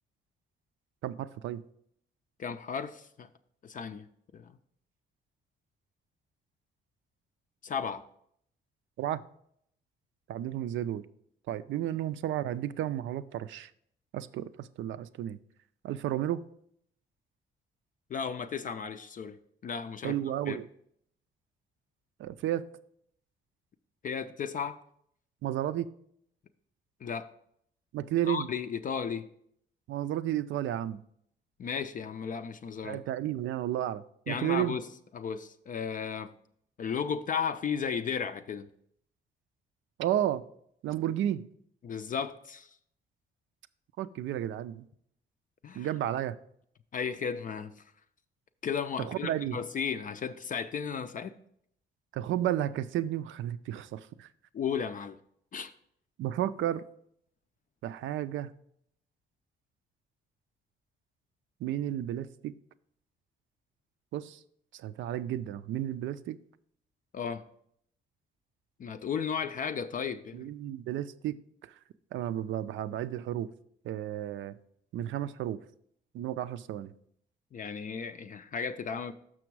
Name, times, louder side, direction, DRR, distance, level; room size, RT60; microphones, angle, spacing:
voice 1, 1.0-1.6 9.0-9.2 10.3-11.0 11.5-13.7 14.1-15.4 15.8-16.4 20.0-20.7 22.2-22.7 25.4-25.9 27.9-28.5 29.9-31.0 32.8-34.8 40.0-40.4 40.8-41.4 44.0-44.9 45.7-46.4 49.0-49.6 52.1-54.3 56.2-56.8 57.8-58.5 61.6-62.5 64.1-64.4 64.7-66.4 70.3-71.7 72.1-73.5 73.8-74.6 74.9-75.6 76.1-76.9, right 12 dB, 75° right, 14 dB, 0.4 m, -32 dB
voice 2, 2.4-3.3 3.6-4.1 4.3-4.5 7.6-8.0 18.1-19.4 19.6-20.1 20.5-20.6 24.0-24.8 27.0-27.3 28.3-29.3 31.6-33.0 34.3-34.9 35.1-36.3 36.8-38.7 41.8-42.7 45.6-45.9 46.9-47.7 48.6-51.4 54.5-55.2 55.5-55.7 67.1-67.4 68.8-70.5 77.5-79.1, left 6 dB, 40° left, 9 dB, 0.4 m, -34 dB
6.1 x 5.9 x 4.6 m, 0.69 s
cardioid pair, 90°, 20 cm